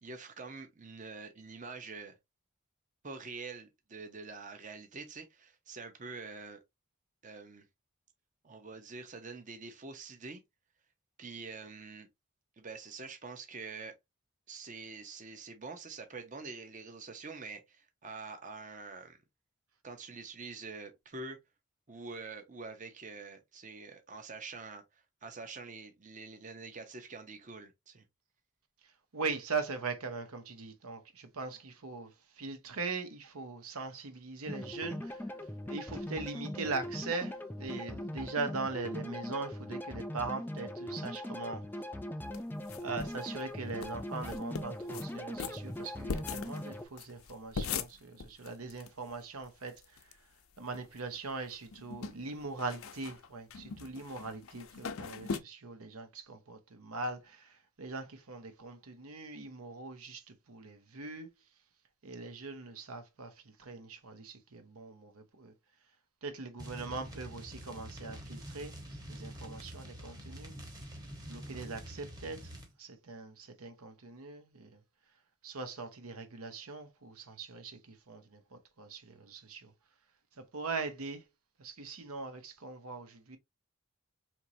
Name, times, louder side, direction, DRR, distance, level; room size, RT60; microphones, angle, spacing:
voice 1, 0.0-2.2 3.0-6.6 7.2-7.7 8.4-10.4 11.2-12.1 12.6-13.9 14.5-19.2 19.8-21.4 21.9-28.0, right 4 dB, 35° right, 0.6 m, -46 dB
voice 2, 28.8-41.7 42.8-50.3 50.6-61.3 62.0-65.5 66.2-70.5 71.3-72.5 72.8-74.8 75.4-79.7 80.3-81.3 81.6-83.4, right 4 dB, 85° right, 0.9 m, -41 dB
sound 1, 34.5-46.8, left 1 dB, 10° left, 0.3 m, -40 dB
sound 2, 42.3-43.2 43.5-43.6 43.8-43.9 44.2-45.1 45.4-48.9 49.2-49.3 49.4-50.1 50.5-51.2 51.5-55.4, left 5 dB, 75° left, 0.5 m, -40 dB
sound 3, 66.6-72.7, equal, 20° right, 0.9 m, -46 dB
4.4 x 3.0 x 2.6 m
head